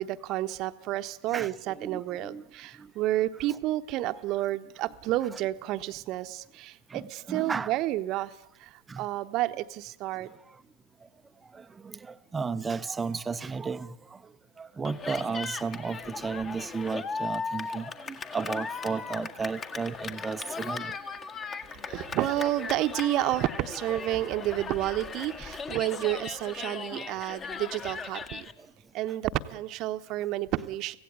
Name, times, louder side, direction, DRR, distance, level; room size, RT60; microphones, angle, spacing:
voice 1, 0.0-10.3 21.8-28.5 28.9-31.0, right 15 dB, 40° right, 1.1 m, -30 dB
voice 2, 1.3-2.4 2.8-2.9 3.5-3.6 6.9-7.7 8.9-9.0 11.5-13.9 14.6-20.9 26.9-27.0, right 5 dB, 15° right, 0.8 m, -34 dB
Cheering, 14.8-28.5, left 4 dB, 25° left, 1.6 m, -38 dB
25.0 x 16.5 x 8.2 m
figure-of-eight pair, 95°, 0 cm